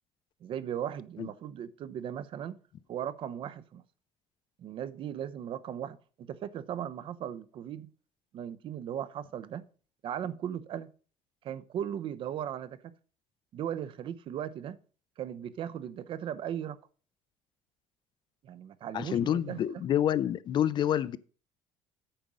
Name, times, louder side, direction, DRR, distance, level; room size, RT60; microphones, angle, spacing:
voice 1, 0.4-2.6 2.9-3.8 4.6-7.9 8.3-9.6 10.0-10.9 11.4-12.9 13.5-14.8 15.2-16.8 18.4-19.8, right 9 dB, 45° right, 0.7 m, -37 dB
voice 2, 18.9-21.2, left 10 dB, 40° left, 0.4 m, -28 dB
8.9 x 5.2 x 7.4 m
cardioid pair, 150°, 12 cm